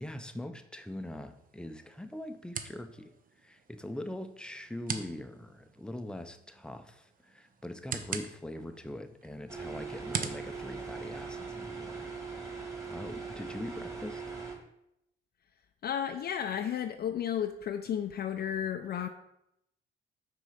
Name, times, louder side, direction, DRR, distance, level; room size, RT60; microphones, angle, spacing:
voice 1, 0.0-12.1 12.9-14.2, left 1 dB, 5° left, 9 dB, 0.6 m, -42 dB
sound 1, 0.8-11.7, right 6 dB, 45° right, 0.7 m, -44 dB
sound 2, 9.5-14.5, right 5 dB, 15° right, 1.9 m, -41 dB
voice 2, 15.8-19.1, left 9 dB, 55° left, 6 dB, 0.5 m, -33 dB
6.1 x 3.8 x 5.6 m, 0.81 s
cardioid pair, 90°, 20 cm